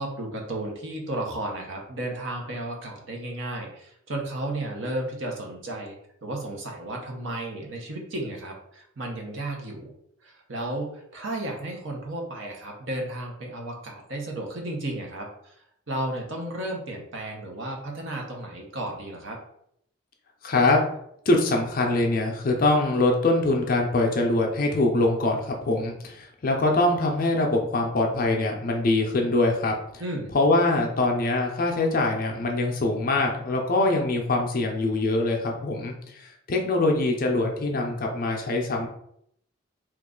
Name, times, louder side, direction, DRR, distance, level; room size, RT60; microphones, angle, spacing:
voice 1, 0.0-9.9 10.2-15.5 15.9-19.4 30.0-30.3, right 1 dB, 65° right, 1 dB, 0.8 m, -33 dB
voice 2, 20.4-20.8 21.3-29.7 30.3-38.9, left 2 dB, 45° left, 1 dB, 0.5 m, -23 dB
3.0 x 2.4 x 3.7 m, 0.72 s
head